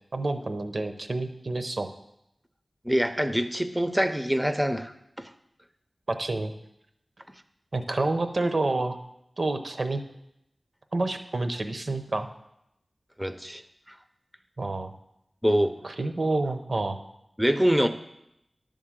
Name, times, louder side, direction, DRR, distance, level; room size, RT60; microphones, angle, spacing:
voice 1, 0.1-1.9 6.1-6.5 7.7-9.0 9.4-10.0 10.9-12.3 14.6-14.9 15.8-17.0, right 2 dB, 60° right, 7 dB, 0.7 m, -28 dB
voice 2, 2.8-5.3 13.2-13.6 15.4-15.8 17.4-17.9, equal, 5° right, 9 dB, 0.5 m, -25 dB
10.5 x 3.7 x 7.3 m, 0.81 s
wide cardioid pair, 60°, 0 cm